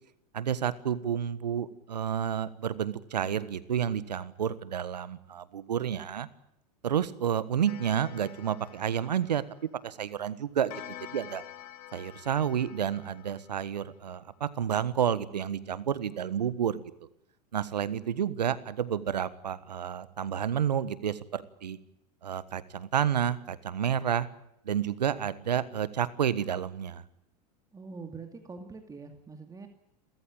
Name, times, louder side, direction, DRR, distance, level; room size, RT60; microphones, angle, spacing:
voice 1, 0.3-6.3 6.8-9.4 9.8-11.4 11.9-16.8 17.5-21.8 22.2-24.3 24.6-27.0, right 9 dB, 90° right, 16 dB, 1.5 m, -30 dB
Clock, 7.7-9.9 10.7-14.1, left 13 dB, 65° left, 2.5 m, -48 dB
voice 2, 27.7-29.7, right 4 dB, 15° right, 5 dB, 2.4 m, -44 dB
30.0 x 14.0 x 8.8 m, 0.80 s
hypercardioid pair, 105°, 21 cm